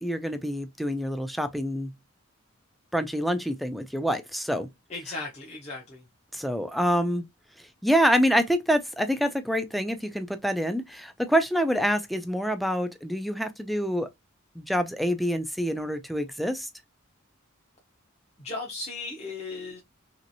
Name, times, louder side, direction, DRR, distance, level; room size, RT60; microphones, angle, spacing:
voice 1, 0.0-1.9 2.9-4.7 6.3-7.2 7.8-14.1 14.6-16.7, equal, ahead, 0.3 m, -26 dB
voice 2, 4.9-6.0 18.4-19.8, left 3 dB, 30° left, 0.7 m, -36 dB
3.0 x 2.9 x 2.6 m
head